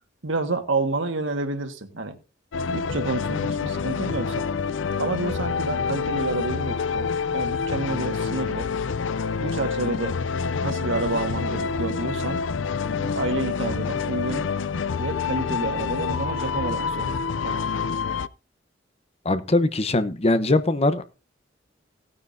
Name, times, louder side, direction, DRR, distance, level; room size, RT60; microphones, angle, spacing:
voice 1, 0.2-2.2 2.7-4.4 5.0-8.7 9.4-10.1 10.6-12.4 13.0-14.4 15.0-17.7, right 3 dB, 85° right, 1.7 m, -29 dB
sound 1, 2.5-18.3, left 5 dB, 80° left, 0.5 m, -27 dB
voice 2, 19.2-21.1, left 2 dB, 35° left, 0.9 m, -21 dB
17.5 x 9.6 x 2.7 m
head